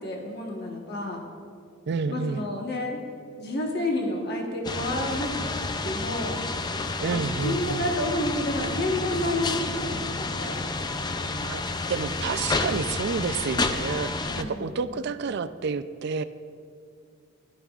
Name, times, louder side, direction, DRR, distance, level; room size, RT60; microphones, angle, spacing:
voice 1, 0.0-1.2 2.1-3.0 3.4-5.4 5.8-6.4 6.7-10.6 14.3-14.9, left 1 dB, 50° left, 0 dB, 1.3 m, -30 dB
voice 2, 1.9-2.5 7.0-7.9 9.5-9.6 11.2-11.6 11.9-16.2, right 5 dB, 55° right, 12 dB, 0.4 m, -30 dB
sound 1, 4.6-14.4, left 3 dB, 20° left, 0.4 m, -30 dB
16.0 x 11.5 x 2.4 m, 2.3 s
head